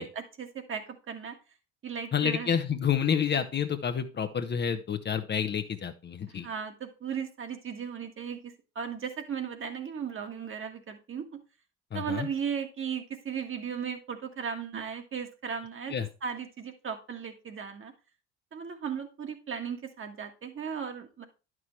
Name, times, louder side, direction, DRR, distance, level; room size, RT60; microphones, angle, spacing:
voice 1, 0.0-1.4 1.8-2.5 6.3-11.4 11.9-15.9 16.2-17.9 18.5-21.2, right 7 dB, 35° right, 5 dB, 1.7 m, -36 dB
voice 2, 2.1-6.5 11.9-12.3 15.9-16.1, left 7 dB, 30° left, 8 dB, 0.9 m, -29 dB
11.0 x 6.2 x 3.2 m, 0.30 s
figure-of-eight pair, 60°, 34 cm